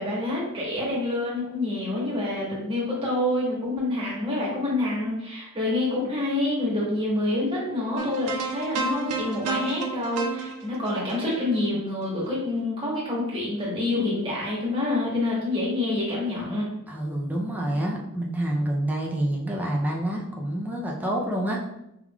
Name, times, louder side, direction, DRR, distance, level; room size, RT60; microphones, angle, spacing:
voice 1, 0.0-16.7, left 2 dB, 25° right, -5 dB, 1.4 m, -27 dB
sound 1, 8.0-12.3, right 4 dB, 80° right, 0.5 m, -32 dB
voice 2, 16.9-21.6, right 1 dB, 5° right, -2 dB, 0.5 m, -27 dB
4.7 x 3.6 x 2.4 m, 0.85 s
head